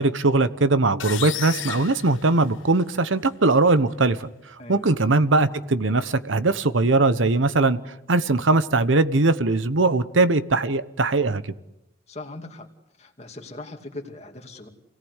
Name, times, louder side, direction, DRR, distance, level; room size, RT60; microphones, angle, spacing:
voice 1, 0.0-4.3 4.7-7.8 8.1-11.4, right 3 dB, 85° right, 1.1 m, -20 dB
sound 1, 1.0-2.9, left 12 dB, 85° left, 0.8 m, -34 dB
voice 2, 12.1-12.7 13.0-14.7, left 2 dB, 35° left, 2.5 m, -39 dB
28.0 x 18.0 x 8.2 m
head